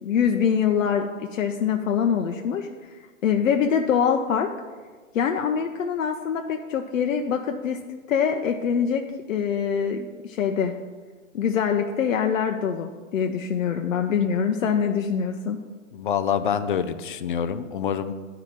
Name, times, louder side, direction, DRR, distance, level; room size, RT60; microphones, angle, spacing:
voice 1, 0.0-2.7 3.2-4.5 5.1-7.8 8.1-9.0 9.3-10.7 11.3-15.6, left 7 dB, 70° left, 4 dB, 0.7 m, -24 dB
voice 2, 15.9-18.1, left 8 dB, 40° left, 11 dB, 0.4 m, -26 dB
8.5 x 4.8 x 7.2 m, 1.4 s
hypercardioid pair, 145°, 41 cm